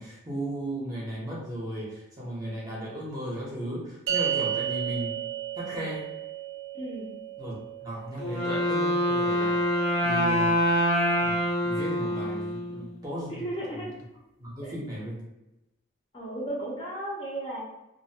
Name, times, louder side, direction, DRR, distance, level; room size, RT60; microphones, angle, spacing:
voice 1, 0.0-5.1 5.6-6.1 7.4-7.6 7.8-9.6 10.0-10.5 11.2-13.4 14.4-15.2, equal, 20° right, -6 dB, 0.7 m, -35 dB
sound 1, 4.1-10.6, right 10 dB, 80° right, 0.4 m, -34 dB
voice 2, 6.7-7.2 13.3-14.0 14.6-14.7 16.1-17.6, right 1 dB, 25° left, -5 dB, 0.5 m, -35 dB
Wind instrument woodwind instrument, 8.2-13.0, equal, 85° left, 0.5 m, -25 dB
2.4 x 2.1 x 2.7 m, 0.95 s
head